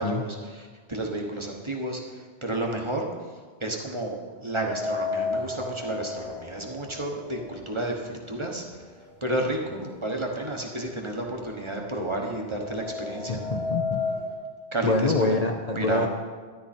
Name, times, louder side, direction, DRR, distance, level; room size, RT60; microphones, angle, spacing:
voice 1, 0.0-2.0 2.4-3.0 3.6-8.6 9.2-13.4 14.7-15.1 15.7-16.1, right 1 dB, 30° right, 1 dB, 1.3 m, -31 dB
sound 1, 4.5-8.6 8.9-9.0 10.0-10.1 10.5-14.3, left 4 dB, 90° left, 4.5 m, -34 dB
voice 2, 13.3-14.0 14.8-16.1, left 2 dB, 40° left, 2 dB, 0.8 m, -25 dB
13.0 x 10.5 x 4.4 m, 1.5 s
omnidirectional pair, 1.1 m